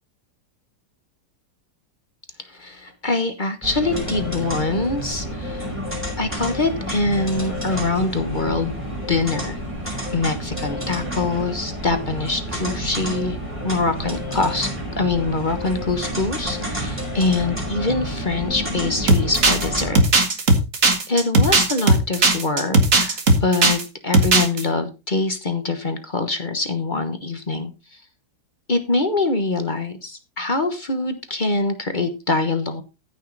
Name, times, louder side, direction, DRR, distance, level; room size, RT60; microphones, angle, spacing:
voice 1, 2.5-5.6 6.2-8.7 9.1-9.6 10.1-13.4 13.6-14.7 15.0-20.0 21.1-28.0 28.7-32.8, left 3 dB, 30° left, 8 dB, 1.2 m, -24 dB
sound 1, 3.6-20.0, equal, 5° right, 5.4 m, -29 dB
sound 2, 19.1-23.8 24.1-24.6, right 2 dB, 45° right, 2.1 m, -16 dB
14.5 x 6.5 x 4.0 m, 0.28 s
omnidirectional pair, 1.9 m